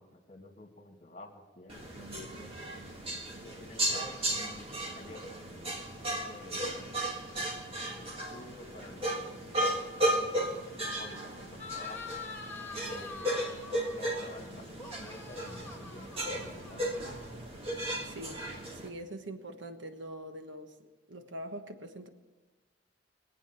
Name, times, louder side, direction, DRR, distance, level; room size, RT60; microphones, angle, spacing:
voice 1, 0.0-2.7 3.4-6.8 7.9-12.2 12.8-13.4 13.7-16.9, left 1 dB, 40° left, 4 dB, 2.1 m, -50 dB
sound 1, 1.7-18.9, right 1 dB, 30° right, 1.8 m, -35 dB
sound 2, 11.6-14.1 14.7-17.3, left 4 dB, 10° left, 2.0 m, -45 dB
voice 2, 17.8-22.1, right 1 dB, 85° right, 7 dB, 1.3 m, -44 dB
23.0 x 8.6 x 5.9 m, 1.2 s
head